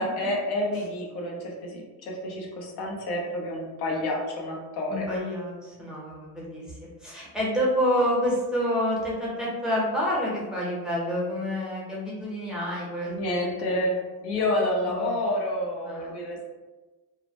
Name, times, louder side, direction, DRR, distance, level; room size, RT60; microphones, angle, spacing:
voice 1, 0.0-5.0 13.1-16.4, left 1 dB, 80° left, -1 dB, 0.7 m, -29 dB
voice 2, 4.9-13.9 14.8-15.1 15.8-16.1, equal, ahead, -7 dB, 0.7 m, -28 dB
2.1 x 2.0 x 2.8 m, 1.2 s
cardioid pair, 120°, 40 cm